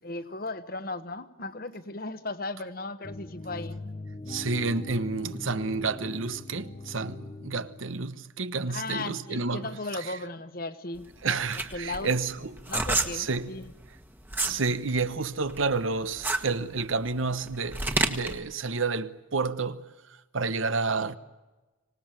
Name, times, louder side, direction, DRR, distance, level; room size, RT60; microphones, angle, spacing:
voice 1, 0.0-3.8 8.7-12.1 12.7-13.7, left 2 dB, 45° left, 1.2 m, -36 dB
sound 1, 3.0-8.0, left 2 dB, 30° left, 0.9 m, -41 dB
voice 2, 4.3-9.7 11.2-12.5 13.1-13.5 14.4-19.8 20.3-21.2, right 4 dB, 80° right, 1.1 m, -30 dB
sound 2, 11.0-14.6 15.0-18.4, right 2 dB, 10° right, 1.4 m, -29 dB
25.5 x 18.5 x 9.1 m
head